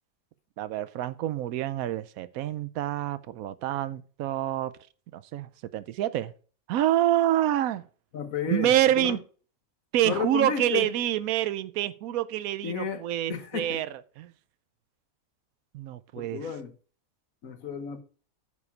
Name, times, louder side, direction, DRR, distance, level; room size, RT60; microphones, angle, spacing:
voice 1, 0.6-4.7 5.1-6.3 6.7-7.8 8.5-9.2 9.9-13.9 14.2-14.3 15.7-16.4, right 12 dB, 80° right, 1.1 m, -27 dB
voice 2, 8.1-9.2 10.0-10.9 12.6-13.8 16.1-16.7 17.4-18.0, left 7 dB, 70° left, 1.5 m, -33 dB
9.6 x 5.4 x 4.6 m
omnidirectional pair, 1.5 m